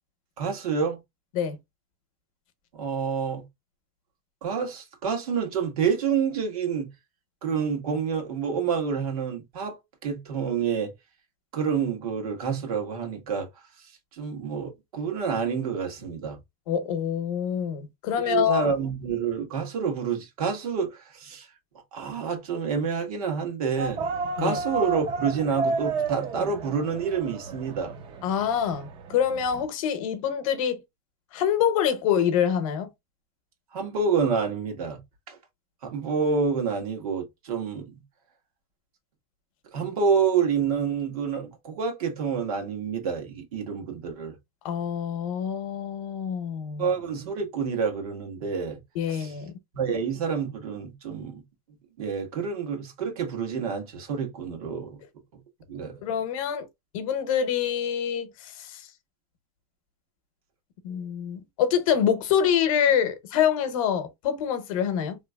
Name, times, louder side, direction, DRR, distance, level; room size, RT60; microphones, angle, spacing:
voice 1, 0.4-1.0 2.7-3.4 4.4-6.9 7.4-9.8 10.0-10.9 11.5-13.5 14.2-16.4 18.2-21.5 21.9-24.0 24.4-27.9 33.7-35.0 35.3-35.4 35.8-38.0 39.7-44.4 46.8-48.8 49.1-49.3 49.7-51.4 52.0-55.0 55.7-56.0, right 6 dB, 80° right, 1.4 m, -28 dB
voice 2, 16.7-18.7 24.4-24.6 28.2-30.8 31.3-32.9 44.6-46.9 48.9-49.5 56.0-56.7 56.9-58.9 60.8-65.2, left 8 dB, 65° left, 0.8 m, -26 dB
sound 1, 23.8-29.7, right 4 dB, 30° right, 0.4 m, -32 dB
2.9 x 2.7 x 2.2 m
supercardioid pair, 150°, 19 cm